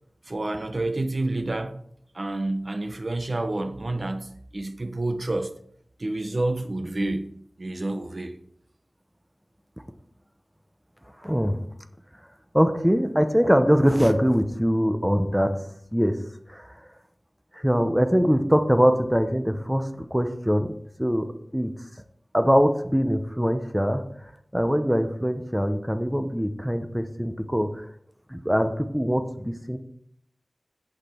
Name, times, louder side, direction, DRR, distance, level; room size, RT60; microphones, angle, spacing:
voice 1, 0.3-1.8 2.1-5.5 6.0-7.3 7.6-8.4, right 2 dB, 50° right, 0.8 m, -29 dB
voice 2, 11.2-11.6 12.5-15.5 15.9-16.2 16.5-16.7 17.5-20.7 21.0-21.3 21.5-21.7 22.3-24.0 24.5-27.9 28.3-29.8, equal, 5° right, 0.8 m, -22 dB
8.3 x 8.3 x 4.5 m
wide cardioid pair, 60°, 0 cm